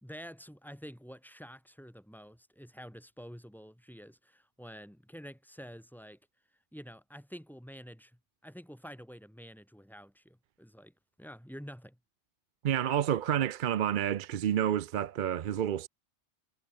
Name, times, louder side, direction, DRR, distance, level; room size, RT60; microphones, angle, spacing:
voice 1, 0.0-6.2 6.7-8.1 8.4-12.0, equal, ahead, 3.1 m, -48 dB
voice 2, 12.6-15.9, right 10 dB, 55° right, 0.6 m, -29 dB
omnidirectional pair, 1.2 m